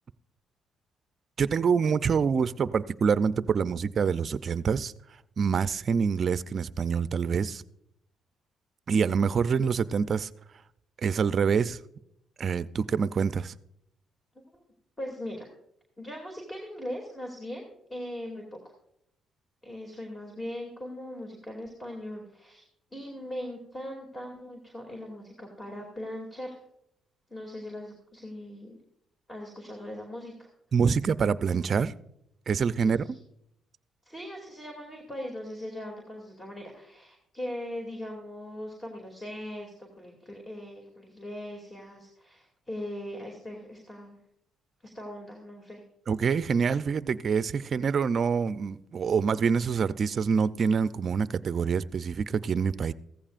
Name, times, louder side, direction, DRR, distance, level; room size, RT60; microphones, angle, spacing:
voice 1, 1.4-4.9 5.4-7.6 8.9-10.3 11.0-11.8 12.4-13.5 30.7-31.9 32.5-33.0 46.1-52.9, right 6 dB, 50° right, 0.5 m, -26 dB
voice 2, 15.0-15.5 16.0-18.7 19.6-22.6 22.9-26.6 27.3-28.8 29.3-30.5 32.8-33.1 34.0-44.2 44.8-45.8, left 1 dB, 20° left, 2.6 m, -40 dB
15.5 x 14.5 x 2.5 m
cardioid pair, 90°, 0 cm